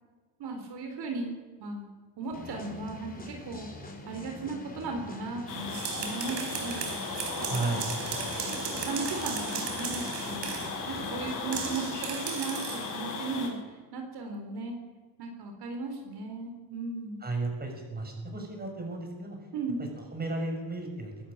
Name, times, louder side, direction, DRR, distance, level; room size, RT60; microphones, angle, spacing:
voice 1, 0.4-1.9 2.2-3.7 4.1-6.9 7.4-7.9 8.4-10.5 10.9-14.7 15.2-17.2 19.5-19.8, right 3 dB, 65° right, 4 dB, 4.1 m, -36 dB
sound 1, 2.3-12.0, left 2 dB, 20° left, 4.6 m, -44 dB
sound 2, 5.5-13.5, left 4 dB, 50° left, 6.7 m, -36 dB
sound 3, 5.5-10.8 11.5-12.9, right 8 dB, 85° right, 4.3 m, -37 dB
voice 2, 7.5-7.9 17.2-19.4 20.1-21.1, right 2 dB, 20° right, 2 dB, 6.5 m, -34 dB
22.0 x 13.5 x 8.8 m, 1.4 s
cardioid pair, 110°, 41 cm